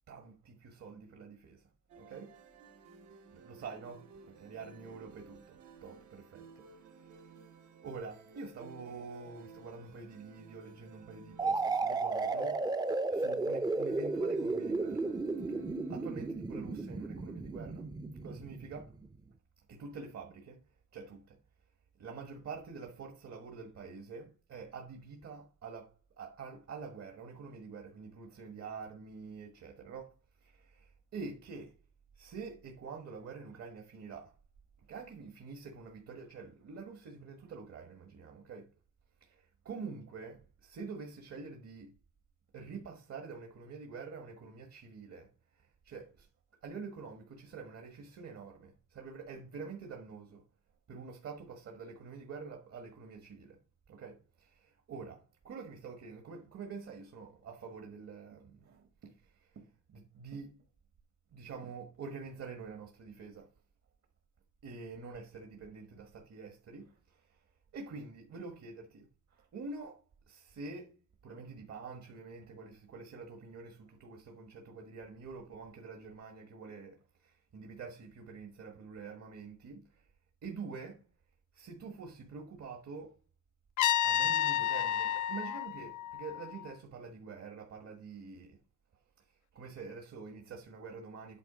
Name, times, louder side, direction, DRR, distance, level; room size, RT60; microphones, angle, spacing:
voice 1, 0.1-1.7 1.9-2.4 3.3-7.4 7.8-12.6 13.1-15.2 15.4-17.9 18.2-19.0 19.7-20.6 20.9-21.4 22.0-31.8 32.1-34.3 34.8-38.7 39.2-41.9 42.5-46.3 46.6-50.4 50.9-53.6 53.9-60.5 61.3-63.5 64.6-67.4 67.7-70.9 71.2-80.1 80.4-81.1 81.5-83.2 84.0-88.6 89.2-91.4, right 4 dB, 55° right, 1.3 m, -47 dB
sound 1, 1.9-16.5, right 5 dB, 75° right, 1.3 m, -56 dB
sound 2, 11.4-19.1, right 3 dB, 15° right, 0.5 m, -34 dB
Trumpet, 83.8-86.7, left 11 dB, 75° left, 0.5 m, -31 dB
8.4 x 3.6 x 4.9 m
cardioid pair, 90°, 30 cm